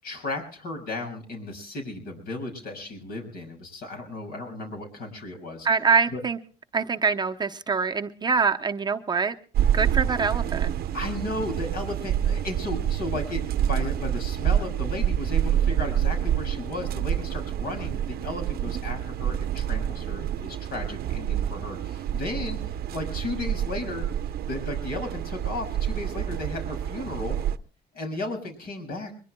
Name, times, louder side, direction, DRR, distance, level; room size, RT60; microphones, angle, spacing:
voice 1, 0.0-5.7 6.1-6.2 10.9-24.0 24.5-27.4 27.9-29.1, left 2 dB, 65° left, 6.7 m, -35 dB
voice 2, 5.6-6.4 6.7-9.3 9.7-10.8, right 5 dB, 25° right, 0.8 m, -24 dB
sound 1, 9.5-27.6, right 10 dB, 65° right, 0.8 m, -27 dB
23.5 x 22.0 x 2.2 m
cardioid pair, 110°, 17 cm